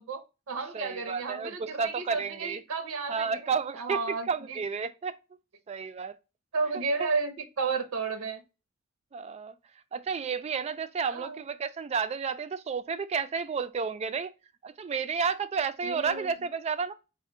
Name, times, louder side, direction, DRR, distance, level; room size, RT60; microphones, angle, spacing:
voice 1, 0.0-3.5 3.7-4.6 6.5-8.4 11.1-11.4 15.8-16.3, right 4 dB, 75° right, 0.6 m, -33 dB
voice 2, 0.7-2.6 3.1-5.2 5.7-6.1 7.0-7.1 9.1-9.6 9.9-14.3 14.6-16.9, right 5 dB, 30° right, 0.3 m, -31 dB
4.3 x 2.1 x 3.6 m
head